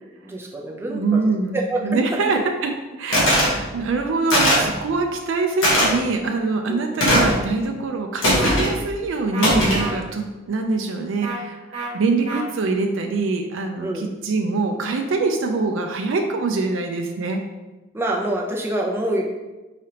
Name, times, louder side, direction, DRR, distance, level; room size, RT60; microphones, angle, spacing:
voice 1, 0.0-2.0 6.7-7.0 13.8-14.1 17.9-19.3, right 1 dB, 10° right, -1 dB, 0.5 m, -27 dB
voice 2, 0.9-2.7 3.0-17.4, right 3 dB, 65° right, 4 dB, 0.4 m, -24 dB
sound 1, 3.1-3.5 4.3-4.7 5.6-5.9 7.0-7.4 8.2-8.7 9.4-9.9, equal, 65° left, 1.3 m, -18 dB
sound 2, 8.4-8.5 9.3-9.5 9.8-9.9 11.2-11.4 11.7-11.9 12.3-12.4, right 4 dB, 30° right, 1.0 m, -30 dB
4.7 x 3.3 x 2.8 m, 1.1 s
head